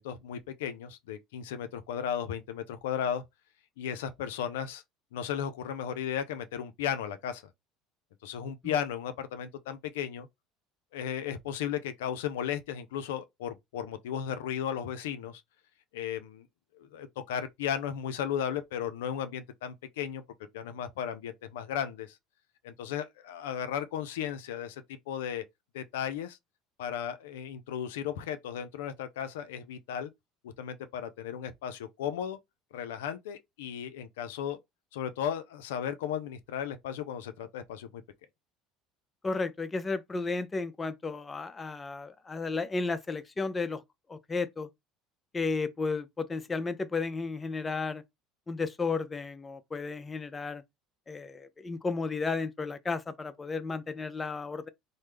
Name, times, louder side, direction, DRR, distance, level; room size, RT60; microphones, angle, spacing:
voice 1, 0.0-3.2 3.8-4.8 5.1-7.4 8.2-10.3 10.9-15.4 15.9-16.5 16.7-20.2 20.5-22.2 22.6-25.4 25.7-26.4 26.8-30.1 30.4-32.4 32.7-34.6 34.9-38.0, left 9 dB, 85° left, 0.4 m, -35 dB
voice 2, 39.2-43.8 44.1-44.7 45.3-48.0 48.5-50.6 51.1-54.7, left 4 dB, 20° left, 0.4 m, -33 dB
3.1 x 2.0 x 3.3 m
supercardioid pair, 90°, 0 cm